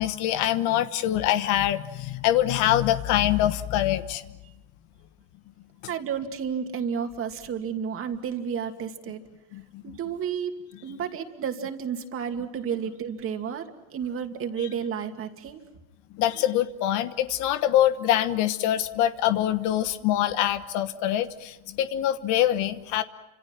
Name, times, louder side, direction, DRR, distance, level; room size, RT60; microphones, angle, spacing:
voice 1, 0.0-4.2 9.5-10.0 16.1-23.0, left 12 dB, 75° left, 11 dB, 1.2 m, -24 dB
voice 2, 5.9-9.2 9.8-13.6 13.9-15.6, right 7 dB, 45° right, 5 dB, 2.6 m, -31 dB
30.0 x 26.5 x 6.0 m, 0.96 s
supercardioid pair, 110°, 30 cm